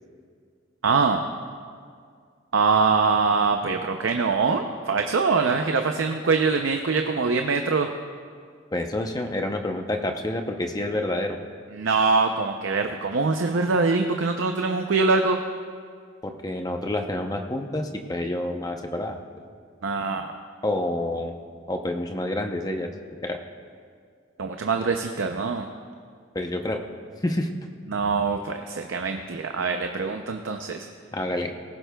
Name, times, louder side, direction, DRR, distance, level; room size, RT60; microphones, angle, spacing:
voice 1, 0.8-1.2 2.5-7.9 11.7-15.4 19.8-20.3 24.4-25.6 27.9-30.9, right 4 dB, 75° right, 5 dB, 0.6 m, -23 dB
voice 2, 8.7-11.4 16.2-19.2 20.6-21.4 21.7-22.9 23.2-23.4 26.3-26.8 27.2-27.5 31.1-31.5, left 1 dB, 20° left, 4 dB, 0.7 m, -28 dB
18.5 x 16.0 x 2.3 m, 2.1 s
head